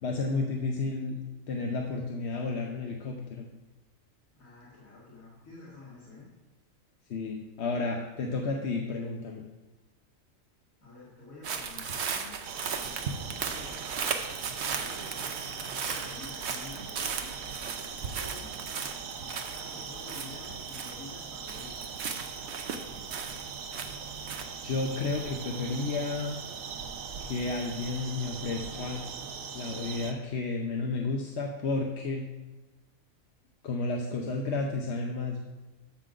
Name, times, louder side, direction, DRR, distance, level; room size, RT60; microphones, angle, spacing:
voice 1, 0.0-1.2 1.5-3.5 7.1-9.4 24.6-26.4 27.2-29.0 29.5-32.3 33.6-35.4, left 3 dB, 60° left, 1 dB, 1.0 m, -32 dB
voice 2, 4.3-6.3 10.8-12.4 13.2-13.9 14.6-17.3 18.1-18.5 19.2-21.9, left 3 dB, 75° left, -9 dB, 2.4 m, -49 dB
sound 1, 11.4-21.2 21.5-24.4, right 6 dB, 60° right, 1.0 m, -36 dB
sound 2, 12.4-30.1, right 6 dB, 75° right, 1.2 m, -41 dB
13.0 x 6.3 x 3.8 m, 1.1 s
omnidirectional pair, 1.4 m